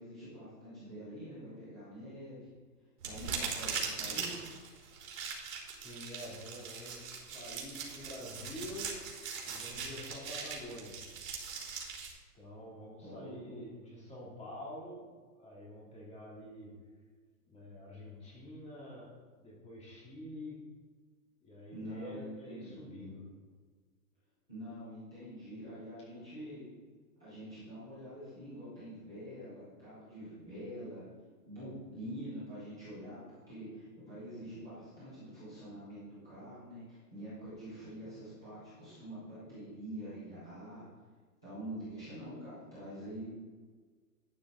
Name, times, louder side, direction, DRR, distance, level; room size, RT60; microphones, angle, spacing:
voice 1, 0.0-2.5 3.0-4.4 13.0-13.5 21.7-23.0 24.5-26.6 27.2-31.0 31.5-40.8 41.4-43.3, equal, 5° right, -14 dB, 0.3 m, -46 dB
sound 1, 3.0-12.1, right 5 dB, 60° right, 3.4 m, -40 dB
voice 2, 5.7-9.0 9.4-11.0 12.3-16.8 17.5-20.6 21.4-23.3, left 1 dB, 15° left, -4 dB, 2.7 m, -47 dB
11.5 x 8.7 x 3.8 m, 1.5 s
hypercardioid pair, 150°, 46 cm